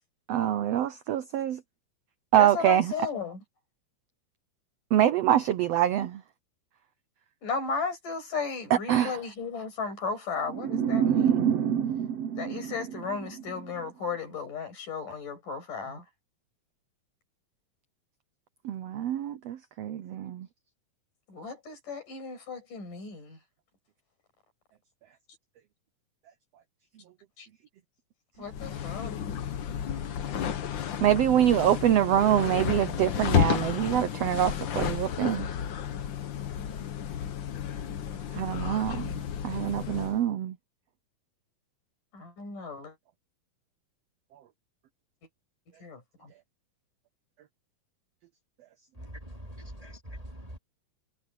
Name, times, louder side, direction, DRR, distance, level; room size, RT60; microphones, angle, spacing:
voice 1, 0.3-1.6 2.3-2.9 4.9-6.2 8.7-9.2 18.6-20.5 31.0-35.5 38.3-40.6, right 11 dB, 75° right, 1.5 m, -25 dB
voice 2, 2.4-3.4 7.4-11.5 12.4-16.0 21.3-23.4 27.4-27.5 28.4-29.1 42.1-42.9 45.8-46.3, left 5 dB, 75° left, 8.0 m, -35 dB
sound 1, 10.5-13.6, right 8 dB, 60° right, 1.9 m, -27 dB
sound 2, 28.5-40.2, left 9 dB, 90° left, 1.0 m, -32 dB
voice 3, 49.0-50.6, equal, 10° right, 2.9 m, -43 dB
omnidirectional pair, 3.8 m